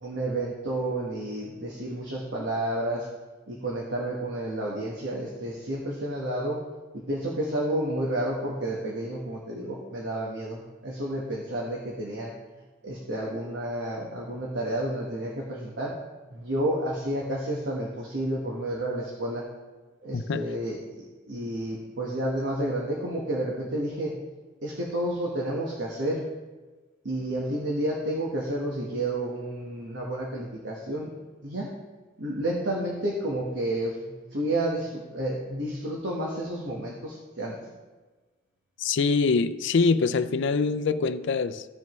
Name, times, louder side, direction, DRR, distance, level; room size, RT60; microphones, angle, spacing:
voice 1, 0.0-3.1 3.5-6.6 6.9-12.3 12.8-15.9 16.3-19.4 20.0-24.2 24.6-26.2 27.0-31.1 31.4-31.7 32.2-37.7, right 1 dB, 65° right, 1.3 m, -30 dB
voice 2, 38.8-41.7, left 4 dB, 65° left, 0.4 m, -24 dB
15.0 x 5.3 x 3.1 m
head